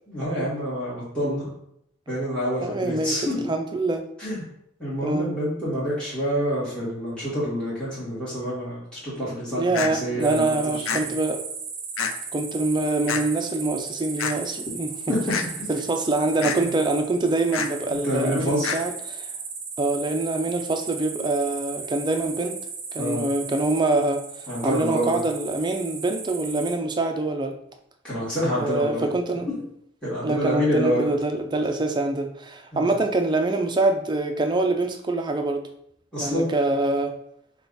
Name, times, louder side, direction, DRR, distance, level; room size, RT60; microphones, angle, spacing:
voice 1, 0.1-1.5 2.1-3.4 4.2-4.4 4.8-10.4 10.7-11.1 15.1-15.2 15.6-15.7 16.6-16.7 18.0-18.7 23.0-23.2 24.5-25.2 28.0-29.1 30.0-31.1 32.7-33.0 36.1-36.5, equal, 5° left, -10 dB, 1.6 m, -27 dB
voice 2, 2.6-4.0 5.0-5.3 9.6-11.4 12.3-15.2 15.7-19.3 19.8-22.6 22.9-27.6 28.6-29.5 30.2-35.7 36.2-37.2, right 2 dB, 20° right, 5 dB, 0.4 m, -25 dB
sound 1, 9.7-9.9 10.9-11.0 12.0-12.1 13.1-13.2 14.2-14.3 15.3-15.5 16.4-16.6 17.5-17.7 18.6-18.8, left 6 dB, 90° left, 0.4 m, -26 dB
sound 2, 10.2-26.7, right 5 dB, 40° right, 0.8 m, -36 dB
5.6 x 2.3 x 3.9 m, 0.73 s
head